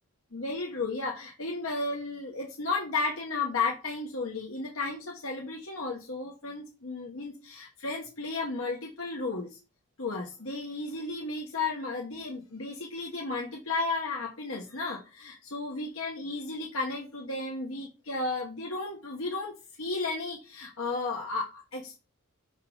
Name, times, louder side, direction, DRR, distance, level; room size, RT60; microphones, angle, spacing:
voice 1, 0.3-9.6 10.0-19.5 19.8-21.9, left 3 dB, 70° left, -1 dB, 1.4 m, -33 dB
6.1 x 5.6 x 3.9 m, 0.31 s
head